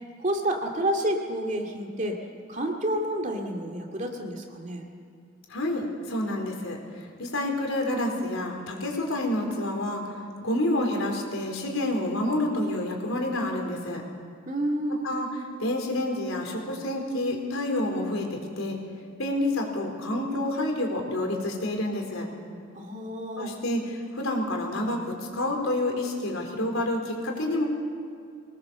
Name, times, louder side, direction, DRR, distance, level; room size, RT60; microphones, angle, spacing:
voice 1, 0.2-2.2 2.5-4.9 14.5-15.1 22.7-23.5, right 1 dB, 35° right, 1 dB, 2.4 m, -29 dB
voice 2, 5.5-6.8 7.2-10.0 10.4-14.0 15.0-15.3 15.6-18.8 19.2-22.3 23.4-27.6, left 1 dB, 85° left, 1 dB, 4.2 m, -28 dB
24.0 x 19.5 x 7.0 m, 2.3 s
head